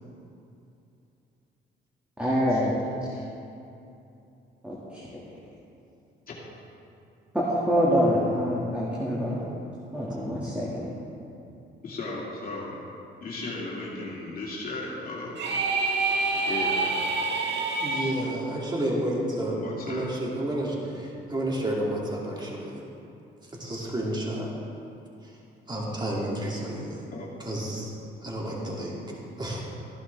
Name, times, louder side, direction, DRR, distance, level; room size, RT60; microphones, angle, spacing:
voice 1, 2.2-2.8 4.6-5.2 7.3-9.4 9.9-10.9, equal, 5° right, -7 dB, 2.1 m, -26 dB
voice 2, 11.8-12.8 13.2-15.4 16.5-16.8 19.6-20.0 20.8-20.9 27.1-27.3, left 2 dB, 45° left, -5 dB, 2.3 m, -35 dB
sound 1, 15.3-18.1, right 3 dB, 60° right, 1.5 m, -27 dB
voice 3, 17.8-22.8 23.4-24.5 25.2-25.3 25.7-27.0 27.4-27.9 28.2-29.0 29.4-29.6, right 1 dB, 20° right, -4 dB, 2.7 m, -30 dB
14.5 x 11.0 x 3.5 m, 2.7 s
cardioid pair, 90°, 20 cm